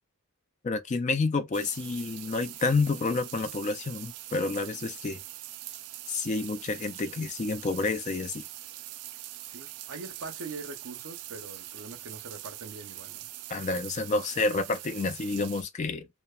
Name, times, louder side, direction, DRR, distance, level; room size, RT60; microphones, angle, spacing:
voice 1, 0.6-5.2 6.1-8.4 13.5-16.1, left 3 dB, 30° left, 0.3 m, -29 dB
sound 1, 1.5-15.6, right 14 dB, 80° right, 0.3 m, -43 dB
voice 2, 9.5-13.3, right 3 dB, 60° right, 0.7 m, -43 dB
2.9 x 2.1 x 2.3 m
head